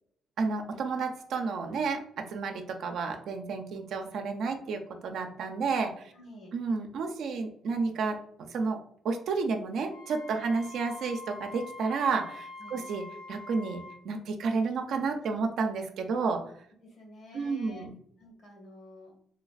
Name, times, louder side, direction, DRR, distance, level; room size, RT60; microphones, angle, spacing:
voice 1, 0.4-6.1 6.5-8.8 9.0-16.4 17.3-18.0, right 4 dB, 75° right, 5 dB, 0.5 m, -31 dB
voice 2, 6.1-6.6 10.3-10.5 12.6-12.9 16.3-16.5 16.8-17.9 18.2-19.2, left 1 dB, 65° left, 0 dB, 1.3 m, -50 dB
Wind instrument woodwind instrument, 9.9-14.0, left 2 dB, 85° left, 0.6 m, -45 dB
3.3 x 3.1 x 2.4 m, 0.65 s
cardioid pair, 90°, 0 cm